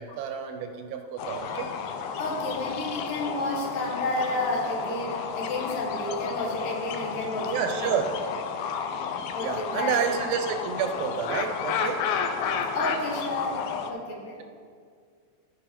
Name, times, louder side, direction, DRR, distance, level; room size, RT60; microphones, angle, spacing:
voice 1, 0.0-1.7 7.5-8.1 9.4-12.0, right 7 dB, 85° right, 6 dB, 2.6 m, -29 dB
sound 1, 1.2-13.9, left 6 dB, 85° left, 2.5 m, -32 dB
voice 2, 2.2-8.0 9.3-10.0 12.7-14.4, left 2 dB, 70° left, -1 dB, 2.9 m, -31 dB
14.5 x 5.4 x 4.3 m, 2.1 s
omnidirectional pair, 4.2 m